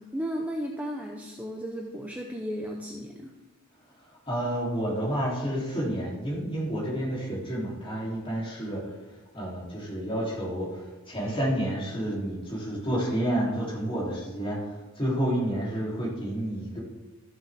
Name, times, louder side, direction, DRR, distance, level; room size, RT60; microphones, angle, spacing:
voice 1, 0.0-3.3, equal, 5° right, 1 dB, 0.6 m, -34 dB
voice 2, 4.3-8.9 9.3-16.8, right 1 dB, 25° left, -5 dB, 2.9 m, -30 dB
14.0 x 7.0 x 3.5 m, 1.2 s
head